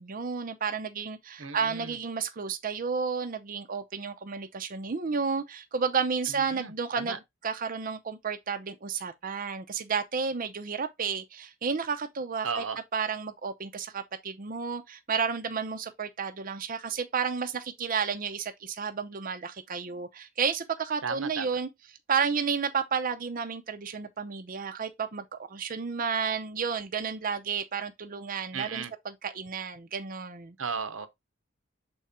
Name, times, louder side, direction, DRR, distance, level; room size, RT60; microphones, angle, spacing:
voice 1, 0.0-7.2 7.4-12.6 12.9-21.7 22.1-28.8 29.2-30.5, right 6 dB, 45° right, 0.6 m, -31 dB
voice 2, 1.4-2.0 6.3-7.2 12.4-12.8 21.0-21.5 28.5-28.9 30.6-31.1, right 5 dB, 85° right, 0.9 m, -35 dB
6.2 x 4.3 x 3.6 m
head